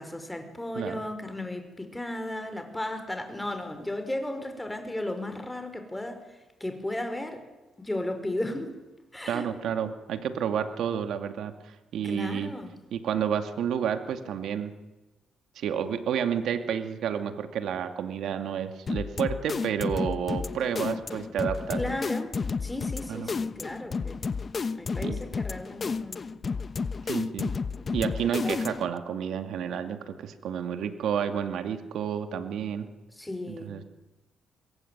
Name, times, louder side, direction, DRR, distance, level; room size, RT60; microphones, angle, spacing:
voice 1, 0.0-7.4 7.8-8.7 9.1-9.8 12.0-12.7 21.7-22.3 22.6-24.2 24.7-26.3 27.8-27.9 28.4-28.6 33.2-33.8, left 1 dB, 10° left, 7 dB, 5.3 m, -35 dB
voice 2, 9.3-12.5 12.9-14.7 15.6-22.0 23.1-23.3 25.0-25.2 27.1-27.6 27.9-32.9 33.5-33.8, right 8 dB, 75° right, 8 dB, 2.4 m, -30 dB
sound 1, 18.9-29.0, left 5 dB, 40° left, 1.1 m, -32 dB
25.5 x 21.5 x 9.5 m, 1.1 s
cardioid pair, 90°, 0 cm